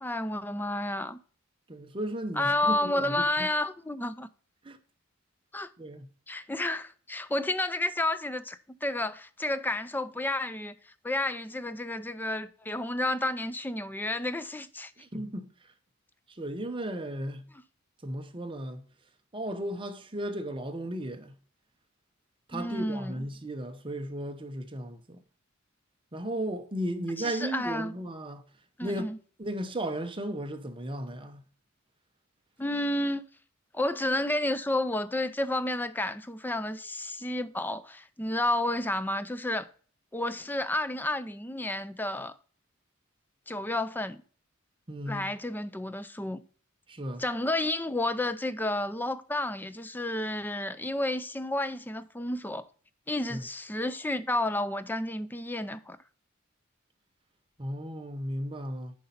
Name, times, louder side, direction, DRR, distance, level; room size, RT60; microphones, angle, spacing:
voice 1, 0.0-1.2 2.3-4.3 5.5-5.7 6.3-14.9 22.5-23.3 27.2-27.9 28.8-29.2 32.6-33.2 33.7-39.7 40.1-42.4 43.5-44.2 45.1-46.4 47.2-52.7 53.1-56.0, left 1 dB, 10° left, 0.4 m, -31 dB
voice 2, 1.7-3.5 4.6-4.8 5.8-6.1 15.0-15.5 16.4-17.4 18.0-18.8 19.3-21.3 22.5-25.2 26.1-28.4 28.8-29.0 29.4-31.4 44.9-45.3 46.9-47.2 53.3-53.4 57.6-58.9, right 1 dB, 25° right, 0.8 m, -35 dB
9.7 x 5.3 x 4.0 m
head